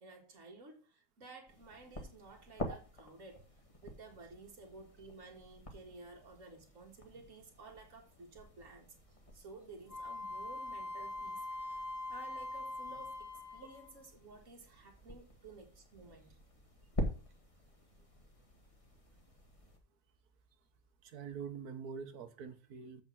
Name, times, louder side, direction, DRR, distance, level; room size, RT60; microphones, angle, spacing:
voice 1, 0.0-3.4 3.8-8.9 9.3-16.3, right 3 dB, 55° right, 2.2 m, -54 dB
sound 1, 1.5-19.8, left 1 dB, 20° left, 1.7 m, -47 dB
Wind instrument woodwind instrument, 9.9-14.0, left 2 dB, 75° left, 2.4 m, -43 dB
voice 2, 21.0-23.0, right 6 dB, 70° right, 1.6 m, -45 dB
7.9 x 5.4 x 6.0 m
omnidirectional pair, 1.7 m